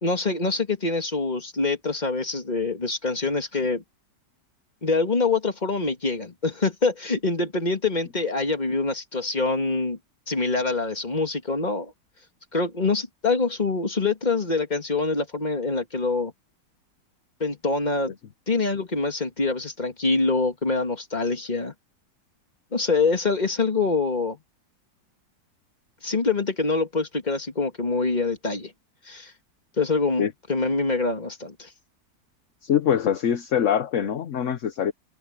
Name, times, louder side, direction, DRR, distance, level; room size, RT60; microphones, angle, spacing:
voice 1, 0.0-3.8 4.8-10.0 10.3-11.9 12.5-16.3 17.4-18.1 18.5-21.7 22.7-24.4 26.0-28.7 29.1-29.3 29.8-31.7, left 3 dB, 25° left, 2.2 m, -25 dB
voice 2, 32.6-34.9, left 9 dB, 50° left, 1.1 m, -23 dB
omnidirectional pair, 1.9 m